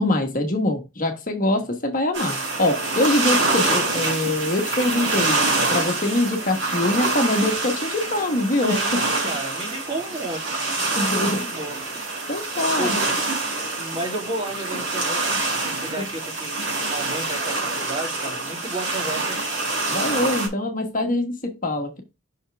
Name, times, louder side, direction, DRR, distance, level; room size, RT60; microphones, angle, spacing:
voice 1, 0.0-5.4 5.7-8.8 11.0-11.4 12.3-12.9 16.0-16.1 19.9-22.0, left 1 dB, 40° left, 4 dB, 1.2 m, -23 dB
sound 1, 2.1-20.5, right 3 dB, 60° right, 3.9 m, -26 dB
voice 2, 8.6-10.9 11.3-11.8 12.7-12.9 13.7-15.5 15.8-19.4, right 2 dB, 30° right, -1 dB, 2.6 m, -33 dB
5.8 x 5.5 x 3.3 m, 0.25 s
head